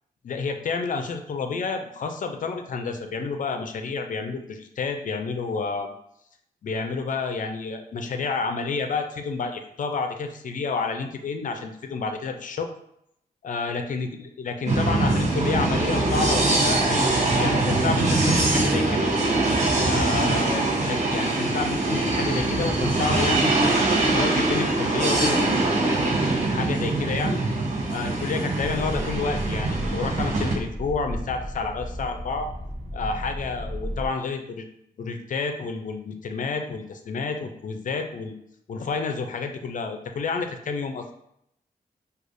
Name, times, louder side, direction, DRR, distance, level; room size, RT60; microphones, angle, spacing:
voice 1, 0.2-5.9 6.6-12.7 13.4-19.1 19.8-23.7 24.1-27.4 27.9-32.5 32.9-34.6 35.0-38.3 38.7-41.1, left 4 dB, 55° left, 5 dB, 0.5 m, -30 dB
sound 1, 14.7-30.5, right 2 dB, 50° right, 0.9 m, -23 dB
sound 2, 28.6-34.1, equal, 30° right, 1.3 m, -34 dB
4.8 x 2.4 x 2.6 m, 0.75 s
wide cardioid pair, 105°, 16 cm